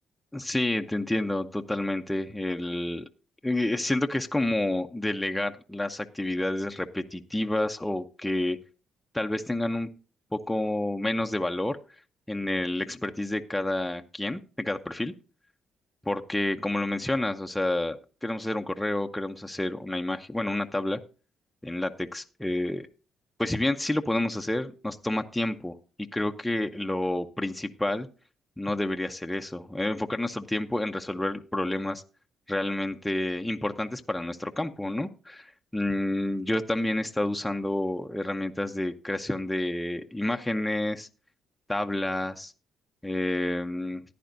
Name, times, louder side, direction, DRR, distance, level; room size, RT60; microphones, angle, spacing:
voice 1, 0.3-3.1 3.4-8.6 9.1-9.9 10.3-11.8 12.3-15.1 16.1-21.0 21.6-22.9 23.4-25.8 26.1-28.1 28.6-32.0 32.5-41.1 41.7-42.5 43.0-44.0, left 1 dB, 5° left, 4 dB, 0.7 m, -29 dB
15.0 x 10.0 x 2.6 m, 0.35 s
cardioid pair, 90°, 0 cm